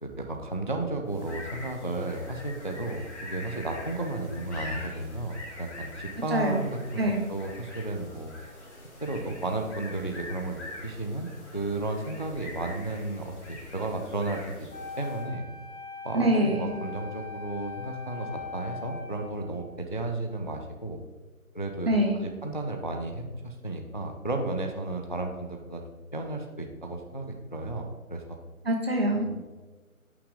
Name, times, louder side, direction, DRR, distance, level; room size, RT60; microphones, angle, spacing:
voice 1, 0.0-8.3 9.0-14.7 15.0-15.4 16.0-21.0 21.5-25.8 26.1-28.4 29.1-29.4, right 2 dB, 35° left, 4 dB, 0.5 m, -33 dB
sound 1, 1.0-15.3, left 1 dB, 50° left, 2.3 m, -44 dB
voice 2, 6.3-6.6 7.0-7.2 16.1-16.7 21.9-22.2 28.6-29.4, right 1 dB, 45° right, 1 dB, 1.4 m, -25 dB
Wind instrument woodwind instrument, 14.7-19.8, left 4 dB, 85° left, 2.0 m, -41 dB
7.9 x 5.8 x 3.6 m, 1.2 s
figure-of-eight pair, 170°, 43 cm